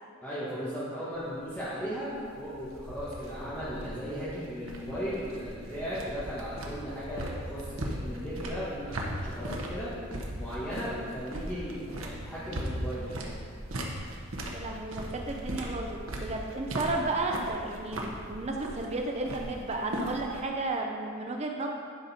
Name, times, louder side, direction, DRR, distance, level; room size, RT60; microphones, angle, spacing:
voice 1, 0.2-9.9 10.4-13.3, equal, 10° left, -12 dB, 1.6 m, -36 dB
sound 1, 1.1-20.4, right 1 dB, 75° right, 1.1 m, -38 dB
voice 2, 14.5-21.7, right 2 dB, 30° right, 1 dB, 0.6 m, -33 dB
10.5 x 5.3 x 4.4 m, 2.2 s
head